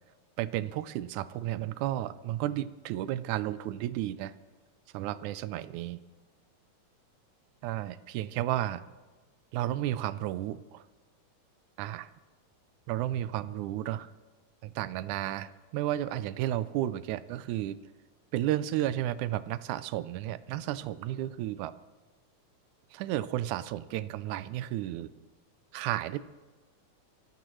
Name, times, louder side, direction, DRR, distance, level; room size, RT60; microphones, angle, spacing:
voice 1, 0.4-4.3 4.9-6.0 7.6-8.8 9.5-10.8 11.8-12.1 12.9-14.1 14.6-17.8 18.3-21.8 22.9-25.1 25.7-26.2, right 13 dB, 90° right, 15 dB, 2.0 m, -32 dB
24.0 x 15.0 x 3.1 m, 1.3 s
omnidirectional pair, 3.4 m